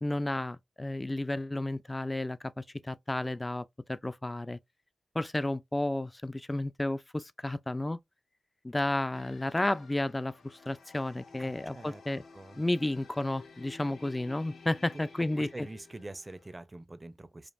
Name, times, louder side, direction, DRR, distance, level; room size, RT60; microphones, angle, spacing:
voice 1, 0.0-4.6 5.1-8.0 8.6-12.2 12.6-15.7, left 1 dB, 20° left, 0.4 m, -32 dB
sound 1, 9.1-16.6, left 4 dB, 85° left, 1.1 m, -53 dB
voice 2, 11.4-12.0 12.3-12.6 15.4-17.5, right 2 dB, 30° right, 0.7 m, -45 dB
5.1 x 2.5 x 2.5 m
cardioid pair, 50°, 0 cm